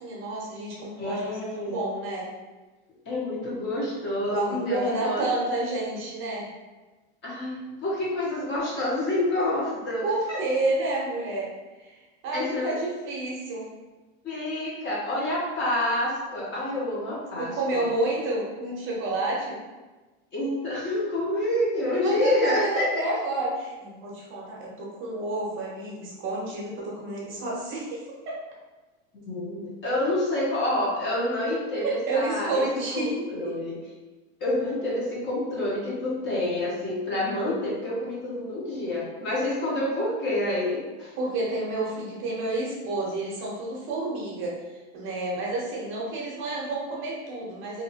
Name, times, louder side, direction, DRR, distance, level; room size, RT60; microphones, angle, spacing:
voice 1, 0.0-1.3 1.6-2.3 4.3-6.4 10.0-11.5 11.8-13.7 17.4-19.6 22.0-28.3 31.8-33.5 41.2-47.8, right 2 dB, 40° right, -4 dB, 0.8 m, -30 dB
voice 2, 1.0-1.8 3.1-5.2 7.2-10.4 12.3-12.7 14.2-17.9 20.3-22.9 29.1-32.6 32.9-33.8 34.4-41.1, left 1 dB, 35° left, -6 dB, 1.0 m, -28 dB
2.7 x 2.5 x 2.7 m, 1.2 s
supercardioid pair, 135°, 33 cm